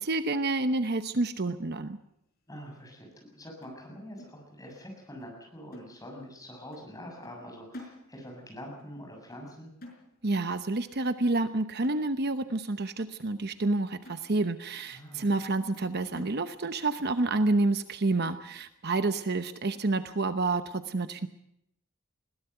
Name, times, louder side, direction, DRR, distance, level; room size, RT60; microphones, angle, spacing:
voice 1, 0.0-2.0 10.2-21.3, right 2 dB, 50° right, 10 dB, 0.9 m, -29 dB
voice 2, 2.5-9.7 14.9-15.3, equal, 15° left, 1 dB, 6.9 m, -45 dB
sound 1, 3.6-4.9 5.2-5.4 5.7-6.4 6.7-7.0 7.2-8.5 8.8-9.0 9.3-10.5 10.8-11.1 11.4-11.5 11.8-12.5 13.0-13.1 13.5-13.6 14.0-14.7 15.1-15.2 15.7-15.8 16.2-16.9 17.2-17.3 17.7-17.9 18.2-18.8 19.3-19.4 19.7-20.0, left 1 dB, 45° left, 5.6 m, -51 dB
21.0 x 17.0 x 8.0 m, 0.79 s
head